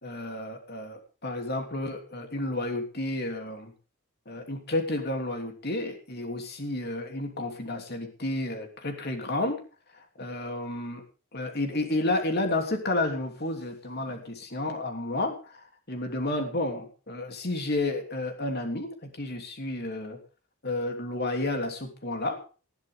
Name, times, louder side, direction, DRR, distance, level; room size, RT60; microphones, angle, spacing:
voice 1, 0.0-3.7 4.3-9.6 9.9-11.0 11.3-20.2 20.6-22.4, left 2 dB, 45° left, 5 dB, 3.2 m, -31 dB
20.0 x 13.0 x 3.7 m, 0.35 s
head